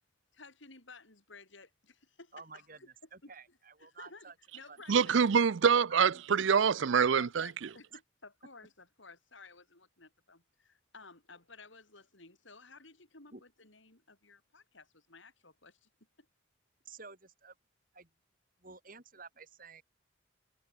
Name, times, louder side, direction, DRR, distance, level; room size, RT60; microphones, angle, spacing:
voice 1, 0.3-5.2 7.1-15.9 16.2-16.3, left 3 dB, 65° left, 5.3 m, -55 dB
voice 2, 2.3-2.8 3.1-4.3 4.7-4.8 5.9-6.2 7.9-8.0 13.3-13.4 16.8-17.5 17.9-18.1 18.6-19.8, right 4 dB, 40° right, 4.7 m, -51 dB
voice 3, 4.9-7.5, right 6 dB, 65° right, 0.5 m, -25 dB
head